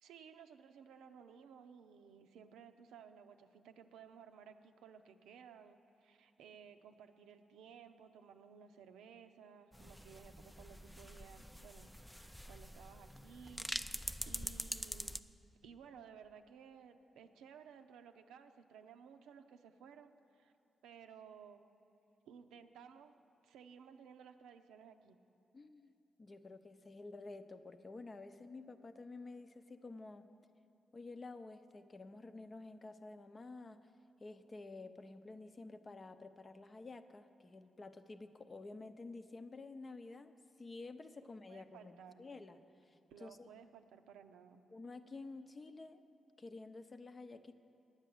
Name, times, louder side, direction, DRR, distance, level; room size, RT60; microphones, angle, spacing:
voice 1, 0.0-15.2 15.6-20.5 20.8-21.6 22.2-23.1 23.4-25.2 41.5-42.2 43.1-44.6, right 7 dB, 90° right, 7 dB, 0.5 m, -57 dB
sound 1, 9.7-15.2, equal, 5° left, 0.4 m, -45 dB
voice 2, 25.5-25.9 26.2-30.3 30.9-33.9 34.2-42.6 42.8-43.5 44.7-46.0 46.4-47.5, left 3 dB, 40° left, 9 dB, 0.7 m, -51 dB
9.7 x 8.1 x 7.7 m, 2.8 s
supercardioid pair, 60°, 0 cm